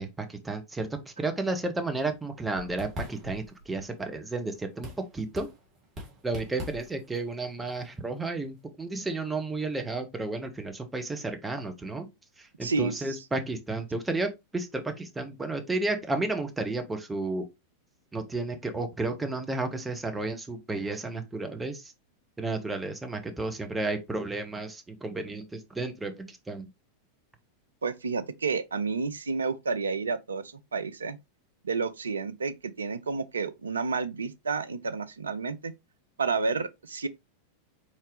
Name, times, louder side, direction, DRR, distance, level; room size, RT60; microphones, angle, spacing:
voice 1, 0.0-4.9 5.1-5.5 6.2-12.1 12.4-17.4 18.1-21.9 22.4-26.6, right 2 dB, 10° right, 0.8 m, -32 dB
sound 1, 1.9-8.6, left 1 dB, 30° right, 1.9 m, -44 dB
voice 2, 12.6-13.2 27.8-31.2 31.6-35.7 36.2-37.1, right 4 dB, 70° right, 0.4 m, -30 dB
4.2 x 3.7 x 3.1 m
figure-of-eight pair, 90°, 0 cm